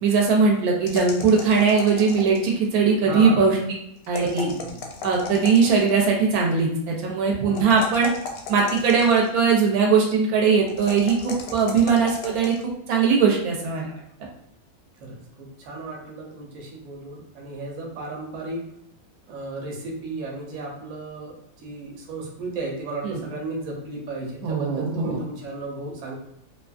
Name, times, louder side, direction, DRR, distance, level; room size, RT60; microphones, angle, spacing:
voice 1, 0.0-3.6 4.1-4.5 5.0-8.1 8.5-13.8 23.0-23.2 24.4-25.2, right 5 dB, 85° right, -1 dB, 1.1 m, -20 dB
sound 1, 0.9-2.7 4.0-6.0 7.5-9.4 10.7-12.6, left 4 dB, 80° left, 1.0 m, -36 dB
voice 2, 3.0-3.5 4.2-4.8 7.4-7.7 15.0-18.6 19.3-21.3 21.6-26.1, right 2 dB, 65° right, -1 dB, 1.0 m, -34 dB
2.7 x 2.4 x 2.3 m, 0.77 s
omnidirectional pair, 1.5 m